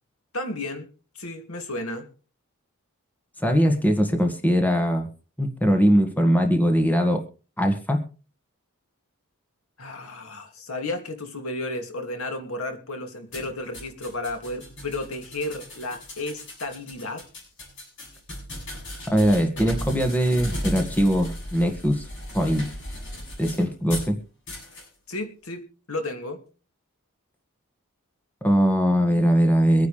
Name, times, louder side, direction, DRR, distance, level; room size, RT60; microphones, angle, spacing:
voice 1, 0.3-0.9 1.2-2.1 9.8-17.3 25.1-26.4, left 2 dB, 90° left, 5 dB, 2.5 m, -33 dB
voice 2, 3.4-5.1 5.4-7.2 7.6-8.0 19.1-22.1 22.3-22.7 23.4-24.2 28.4-29.9, equal, 10° left, 4 dB, 1.8 m, -21 dB
sound 1, 13.3-24.1 24.5-24.9, left 1 dB, 60° left, 7.4 m, -36 dB
24.5 x 9.5 x 3.4 m, 0.36 s
head